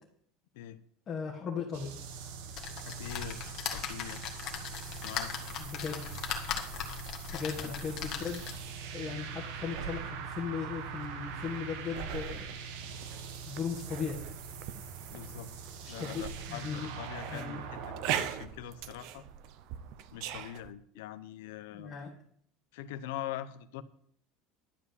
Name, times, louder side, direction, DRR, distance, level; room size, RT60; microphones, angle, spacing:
voice 1, 1.1-1.9 5.6-6.0 7.3-8.4 8.9-12.5 13.5-14.2 15.8-16.9 17.3-17.6 21.7-22.1, left 6 dB, 25° left, -3 dB, 1.6 m, -37 dB
sound 1, 1.7-18.5, right 6 dB, 75° right, 1.5 m, -43 dB
sound 2, 2.5-8.8 9.3-9.4 9.7-9.8, left 8 dB, 40° left, 1.8 m, -39 dB
voice 2, 2.8-4.4 5.0-5.3 7.6-7.8 15.1-15.5 15.9-19.2 20.1-21.9 22.7-23.8, left 11 dB, 85° left, 14 dB, 0.8 m, -43 dB
sound 3, 7.9-20.7, right 10 dB, 55° right, 0.7 m, -42 dB
12.0 x 4.9 x 8.3 m, 0.63 s
cardioid pair, 160°, 0 cm